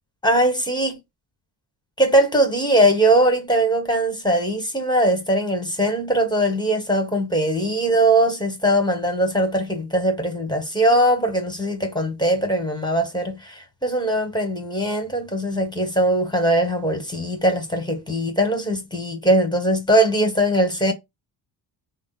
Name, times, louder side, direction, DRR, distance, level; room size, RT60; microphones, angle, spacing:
voice 1, 0.2-0.9 2.0-20.9, right 1 dB, 10° left, 1.2 m, -20 dB
3.5 x 2.1 x 3.9 m
supercardioid pair, 75°, 45 cm